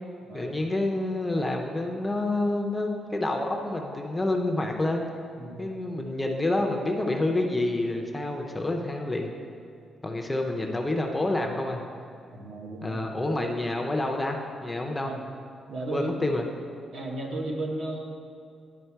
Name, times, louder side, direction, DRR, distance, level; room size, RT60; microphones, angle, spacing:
voice 1, 0.3-5.1 5.6-9.3 10.0-11.8 12.8-15.1 15.9-16.5, left 2 dB, 10° left, 2 dB, 0.5 m, -28 dB
voice 2, 5.4-5.8 12.3-13.3 15.0-15.2 15.7-16.4 16.9-18.0, right 2 dB, 65° right, 0 dB, 1.0 m, -34 dB
10.5 x 3.6 x 4.5 m, 2.4 s
cardioid pair, 170°, 0 cm